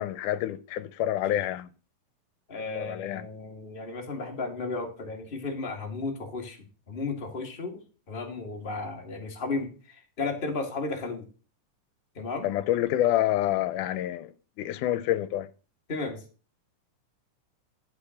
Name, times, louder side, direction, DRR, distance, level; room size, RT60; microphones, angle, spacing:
voice 1, 0.0-1.7 2.7-3.3 12.4-14.3 14.6-15.5, left 13 dB, 80° left, 2.1 m, -27 dB
voice 2, 2.5-6.6 6.9-7.8 8.1-11.2 12.1-12.5 15.9-16.2, left 3 dB, 20° left, 1.6 m, -34 dB
12.0 x 5.2 x 6.3 m
omnidirectional pair, 3.6 m